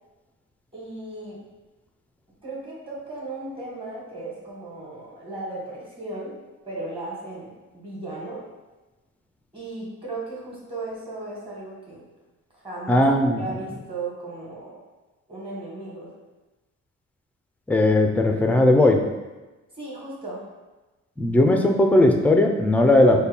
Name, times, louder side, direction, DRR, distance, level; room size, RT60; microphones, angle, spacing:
voice 1, 0.7-1.4 2.4-6.3 6.6-8.4 9.5-12.0 12.5-13.0 13.4-14.8 15.3-16.1 19.7-20.5, right 2 dB, 15° right, -5 dB, 1.4 m, -36 dB
voice 2, 12.9-13.4 17.7-19.0 21.2-23.2, left 1 dB, 5° left, 3 dB, 0.4 m, -18 dB
4.2 x 2.2 x 3.4 m, 1.1 s
cardioid pair, 90°, 30 cm